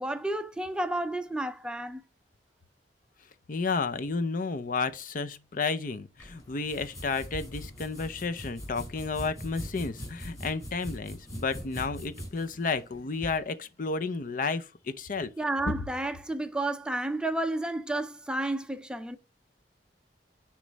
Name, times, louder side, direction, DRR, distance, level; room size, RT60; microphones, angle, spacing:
voice 1, 0.0-2.0 15.4-19.2, right 1 dB, 5° right, 0.5 m, -31 dB
voice 2, 3.5-15.3, left 4 dB, 50° left, 0.5 m, -32 dB
sound 1, 6.2-13.4, equal, 15° left, 4.1 m, -42 dB
9.5 x 3.2 x 3.9 m
head